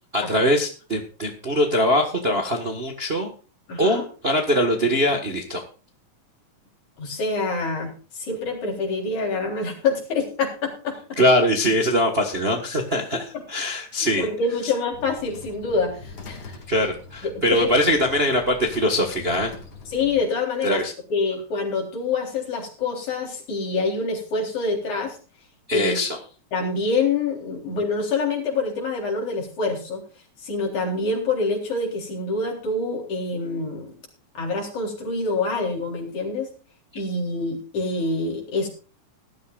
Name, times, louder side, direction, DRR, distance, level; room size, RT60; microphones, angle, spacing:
voice 1, 0.1-3.3 3.8-5.6 11.2-14.3 14.6-14.7 16.7-19.5 20.6-20.9 25.7-26.2, equal, 30° right, 3 dB, 1.1 m, -22 dB
voice 2, 3.7-4.0 7.0-11.2 14.0-16.6 17.3-17.7 19.9-20.8 21.1-25.2 25.7-26.0 26.5-30.0 30.4-34.0 34.3-36.5 36.9-38.7, left 3 dB, 70° left, 0 dB, 5.2 m, -26 dB
sound 1, 14.9-20.2, left 4 dB, 45° left, 2.8 m, -42 dB
19.0 x 12.5 x 2.5 m, 0.36 s
omnidirectional pair, 3.5 m